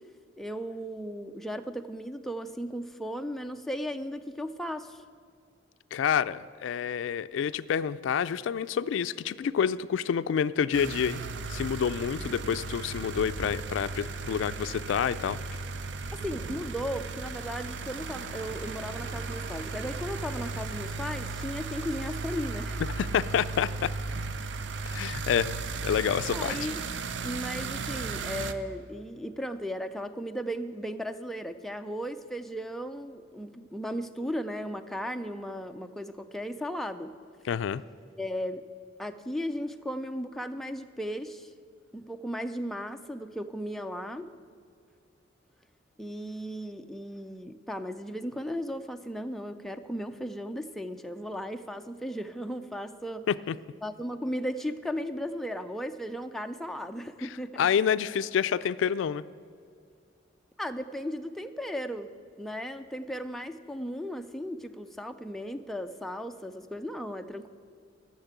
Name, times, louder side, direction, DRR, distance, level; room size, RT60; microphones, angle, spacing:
voice 1, 0.4-5.0 16.1-22.9 26.3-26.8 27.2-37.1 38.2-38.7 39.0-41.5 41.9-44.3 46.0-53.3 53.8-57.7 60.6-62.1 62.4-67.5, equal, ahead, 6 dB, 0.4 m, -36 dB
voice 2, 5.9-11.2 11.5-15.4 23.0-23.9 24.9-25.5 25.8-26.6 37.5-37.8 53.3-53.6 57.6-59.2, left 8 dB, 75° left, 15 dB, 0.3 m, -28 dB
sound 1, 10.7-28.5, right 4 dB, 65° right, 0.5 m, -36 dB
sound 2, 11.3-26.2, right 1 dB, 45° right, 1.0 m, -49 dB
12.0 x 6.5 x 8.0 m, 2.2 s
head